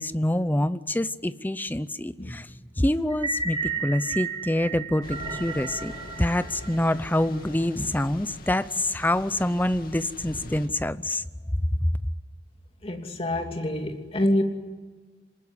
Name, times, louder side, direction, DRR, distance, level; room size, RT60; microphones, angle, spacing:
voice 1, 0.0-2.5 2.8-5.9 6.2-11.2 11.6-11.9, left 1 dB, 10° left, 14 dB, 0.7 m, -26 dB
sound 1, 3.1-7.4, right 4 dB, 30° right, 6.0 m, -33 dB
Thunder / Rain, 5.0-10.7, left 1 dB, 55° left, 2.4 m, -42 dB
voice 2, 12.8-14.4, left 1 dB, 35° left, 4 dB, 2.8 m, -26 dB
27.0 x 20.0 x 9.7 m, 1.4 s
head